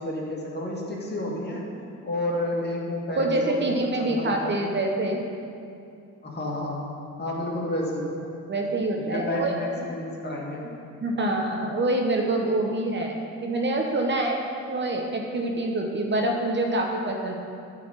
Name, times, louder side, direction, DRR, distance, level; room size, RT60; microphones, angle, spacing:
voice 1, 0.0-1.6 2.0-4.6 6.2-6.8 7.2-8.1 9.0-10.6, left 1 dB, 35° left, -3 dB, 1.9 m, -30 dB
voice 2, 3.2-5.2 8.5-9.9 11.0-13.2 13.4-14.4 14.7-17.3, right 2 dB, 35° right, 2 dB, 0.9 m, -26 dB
9.2 x 4.2 x 7.1 m, 2.5 s
cardioid pair, 90°, 30 cm